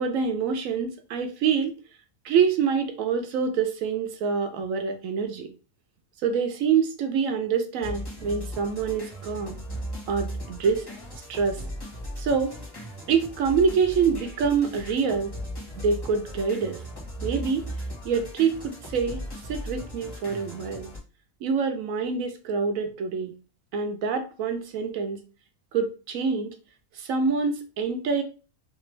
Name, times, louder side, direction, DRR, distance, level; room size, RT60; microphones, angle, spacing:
voice 1, 0.0-1.7 2.2-5.5 6.2-9.6 10.1-10.9 11.3-11.6 12.2-12.5 13.1-15.3 15.8-16.8 17.2-17.6 18.0-20.9 21.4-23.3 23.7-25.2 25.7-26.5 26.9-28.2, right 6 dB, 85° right, 6 dB, 1.0 m, -26 dB
sound 1, 7.8-21.0, equal, 20° left, 1.2 m, -37 dB
3.3 x 2.5 x 3.2 m, 0.33 s
omnidirectional pair, 1.4 m